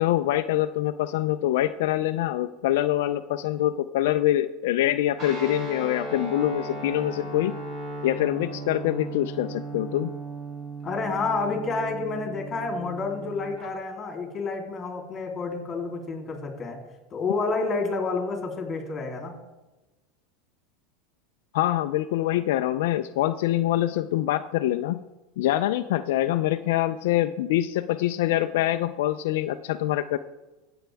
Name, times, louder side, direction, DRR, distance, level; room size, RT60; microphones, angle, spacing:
voice 1, 0.0-7.5 8.0-10.1 21.5-25.0 25.4-30.2, left 13 dB, 75° left, 9 dB, 0.4 m, -25 dB
Guitar, 5.2-13.7, right 2 dB, 40° right, 4.0 m, -37 dB
voice 2, 10.8-16.8 17.1-19.4, left 4 dB, 25° left, 1 dB, 3.3 m, -29 dB
16.5 x 7.9 x 3.5 m, 1.1 s
supercardioid pair, 135°, 0 cm